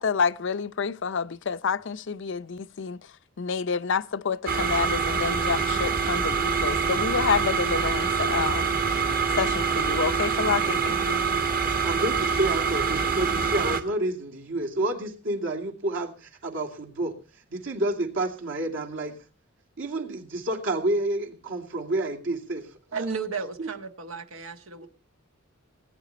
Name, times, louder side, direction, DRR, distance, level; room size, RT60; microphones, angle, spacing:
voice 1, 0.0-8.8 9.3-11.2, left 6 dB, 60° left, 0.6 m, -28 dB
sound 1, 4.5-13.8, right 5 dB, 45° right, 1.5 m, -25 dB
voice 2, 11.8-17.2 17.5-19.1 19.8-22.7 23.6-23.7, right 1 dB, 65° right, 2.6 m, -29 dB
voice 3, 22.9-24.9, right 5 dB, 85° right, 1.3 m, -33 dB
19.5 x 9.9 x 4.2 m
head